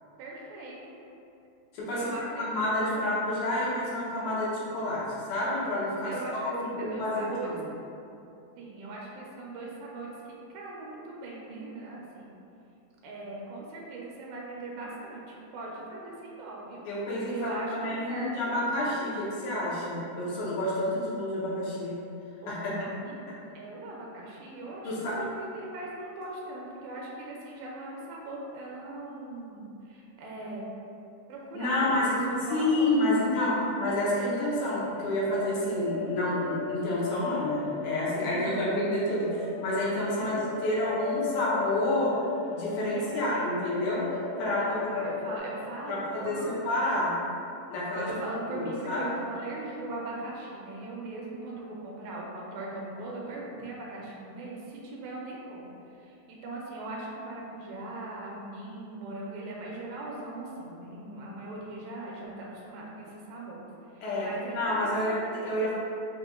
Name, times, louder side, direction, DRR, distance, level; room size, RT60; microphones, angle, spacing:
voice 1, 0.2-1.0 1.9-2.5 2.8-3.1 5.9-7.6 8.6-10.1 10.5-12.3 13.0-16.9 17.3-18.8 22.4-30.6 31.3-32.0 32.3-33.3 38.3-38.7 40.1-40.5 42.9-43.6 44.6-46.6 48.0-65.7, right 2 dB, 80° right, -3 dB, 1.8 m, -40 dB
voice 2, 1.7-2.1 2.5-5.0 5.3-7.5 16.9-22.0 22.5-22.7 24.8-25.1 31.5-32.2 32.5-40.3 40.6-42.1 42.5-45.0 45.9-47.1 47.7-48.1 48.5-49.0 64.0-65.7, left 1 dB, 85° left, -7 dB, 2.3 m, -29 dB
sound 1, 33.9-45.4, left 7 dB, 65° left, 1.5 m, -36 dB
5.6 x 2.8 x 2.4 m, 2.7 s
omnidirectional pair, 3.4 m